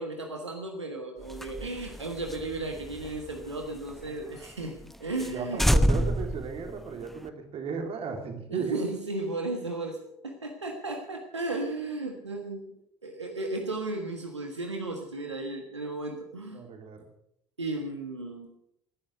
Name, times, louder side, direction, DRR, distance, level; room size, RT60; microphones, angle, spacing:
voice 1, 0.0-5.8 8.5-12.7 13.0-16.6 17.6-18.5, right 2 dB, 85° right, 2 dB, 1.5 m, -35 dB
sound 1, 1.2-4.1 4.4-4.5 4.8-4.9 5.2-5.3 5.6-7.3, equal, ahead, 0.9 m, -28 dB
voice 2, 5.3-8.8 16.5-17.1, right 5 dB, 40° right, 5 dB, 3.1 m, -35 dB
19.0 x 10.5 x 6.3 m, 0.75 s
figure-of-eight pair, 60°, 14 cm